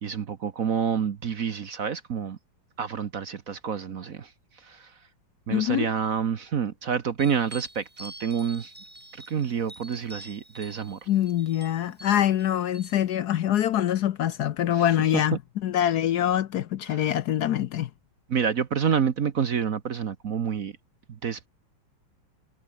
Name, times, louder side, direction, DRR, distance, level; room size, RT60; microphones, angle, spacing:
voice 1, 0.0-2.4 2.8-4.3 4.6-4.9 5.5-8.7 9.3-11.1 14.7-14.8 15.3-15.4 16.9-17.0 18.3-20.7 21.1-21.5, right 7 dB, 50° right, 1.3 m, -28 dB
voice 2, 5.5-5.9 11.1-17.9, left 11 dB, 65° left, 1.1 m, -24 dB
sound 1, 7.2-13.0, right 1 dB, 5° right, 1.5 m, -47 dB
omnidirectional pair, 2.2 m